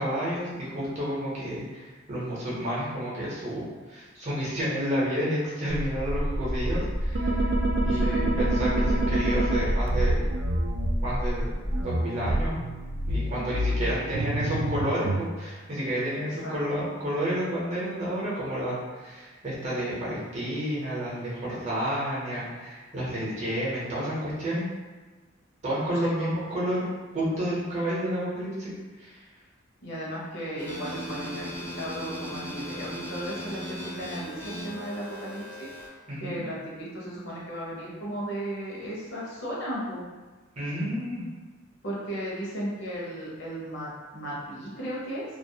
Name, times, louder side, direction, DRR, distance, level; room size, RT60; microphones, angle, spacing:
voice 1, 0.0-3.6 3.9-7.5 7.8-10.3 11.0-11.5 11.8-12.6 13.1-24.6 25.6-26.9 27.1-28.7 29.0-29.1 36.1-36.4 40.6-41.2, equal, 35° right, -7 dB, 0.7 m, -30 dB
sound 1, 5.7-11.8, equal, 85° right, 0.7 m, -28 dB
sound 2, 7.1-10.9 11.7-15.3, right 1 dB, 65° right, 0.3 m, -28 dB
voice 2, 7.9-8.3 11.8-12.2 16.4-16.5 26.0-26.3 29.8-35.7 36.2-40.1 41.8-45.2, right 1 dB, 65° left, -6 dB, 0.8 m, -35 dB
sound 3, 30.6-35.9, equal, 10° left, 0.4 m, -37 dB
2.3 x 2.0 x 2.7 m, 1.3 s
head